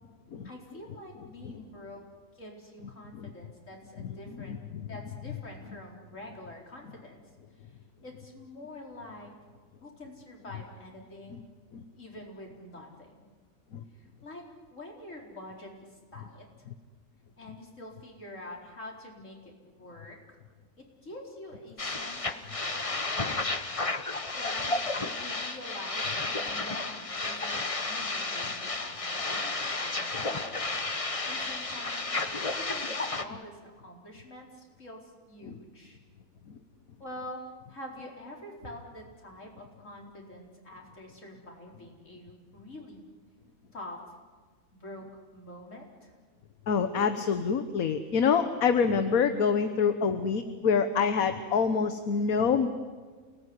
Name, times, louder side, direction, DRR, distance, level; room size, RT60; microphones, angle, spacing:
voice 1, 0.4-2.0 2.3-4.6 4.9-7.2 7.5-7.8 8.0-9.3 9.8-11.5 11.9-13.3 13.9-14.4 14.7-16.7 17.4-20.4 20.8-22.4 22.7-23.3 24.3-24.7 25.2-30.7 31.2-32.1 32.5-36.0 37.0-37.4 37.7-43.1 43.7-44.0 44.7-46.1, left 1 dB, 60° left, 0 dB, 4.8 m, -46 dB
sound 1, 21.8-33.2, left 3 dB, 25° left, 1.3 m, -32 dB
voice 2, 46.7-52.7, left 6 dB, 80° left, 9 dB, 1.5 m, -26 dB
28.5 x 19.0 x 9.8 m, 1.5 s
omnidirectional pair, 1.5 m